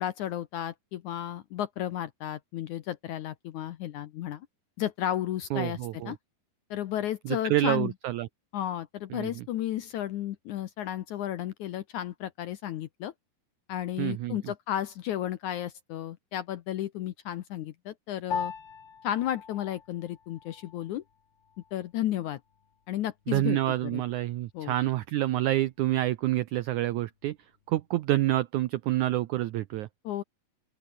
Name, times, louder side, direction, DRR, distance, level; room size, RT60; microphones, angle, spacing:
voice 1, 0.0-4.5 4.8-6.2 6.7-7.9 8.5-13.1 13.7-18.5 19.0-21.0 21.7-22.4 22.9-23.6 23.9-24.0 24.5-24.7 30.0-30.2, left 12 dB, 70° left, 1.9 m, -33 dB
voice 2, 5.5-6.1 7.2-8.3 9.1-9.4 14.0-14.3 23.3-27.4 27.7-29.9, right 15 dB, 80° right, 1.7 m, -28 dB
Piano, 18.3-27.9, left 6 dB, 40° left, 2.8 m, -43 dB
open air
omnidirectional pair, 4.4 m